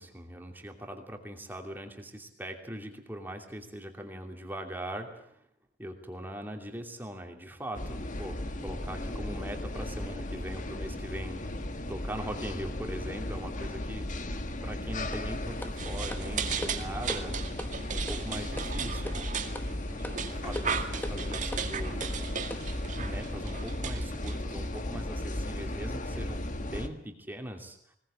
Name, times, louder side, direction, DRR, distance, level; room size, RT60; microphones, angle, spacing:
voice 1, 0.0-5.4 5.8-11.6 11.9-14.1 14.6-17.4 17.7-19.3 19.9-22.2 22.9-28.0, right 1 dB, 10° right, 3 dB, 2.7 m, -41 dB
sound 1, 7.7-26.9, left 1 dB, 45° left, 1.6 m, -36 dB
sound 2, 15.1-22.8, left 1 dB, 10° left, 1.4 m, -43 dB
sound 3, 15.8-24.8, right 6 dB, 45° right, 2.1 m, -37 dB
21.0 x 18.5 x 8.8 m, 0.70 s
head